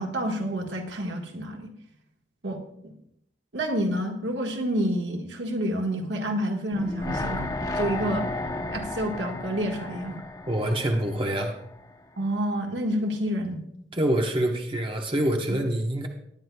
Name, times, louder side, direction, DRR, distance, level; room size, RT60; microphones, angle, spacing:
voice 1, 0.0-1.7 2.4-2.6 3.5-8.3 8.7-10.2 12.2-13.6 15.5-15.6, equal, 85° right, 2 dB, 1.5 m, -28 dB
sound 1, 6.7-11.9 12.2-12.3, left 2 dB, 20° left, 0.8 m, -33 dB
voice 2, 10.5-11.5 13.9-16.1, right 1 dB, 30° right, 1 dB, 1.1 m, -26 dB
19.0 x 10.0 x 2.3 m, 0.74 s
head